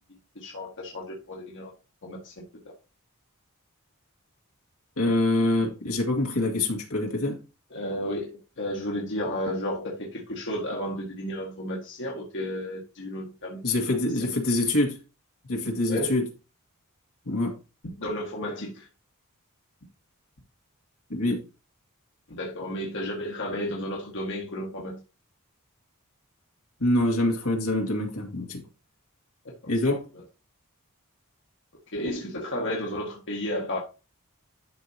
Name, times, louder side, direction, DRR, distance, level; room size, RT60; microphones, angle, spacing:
voice 1, 0.3-1.7 2.0-2.3 7.7-8.3 8.6-13.6 13.9-14.3 15.9-16.1 18.0-18.9 22.3-25.0 29.6-29.9 31.9-33.8, left 1 dB, 55° left, 1.7 m, -32 dB
voice 2, 5.0-7.4 13.6-15.0 15.5-16.3 17.3-17.5 21.1-21.4 26.8-28.6 29.7-30.1, left 1 dB, 75° left, 2.0 m, -25 dB
11.5 x 4.6 x 2.9 m
head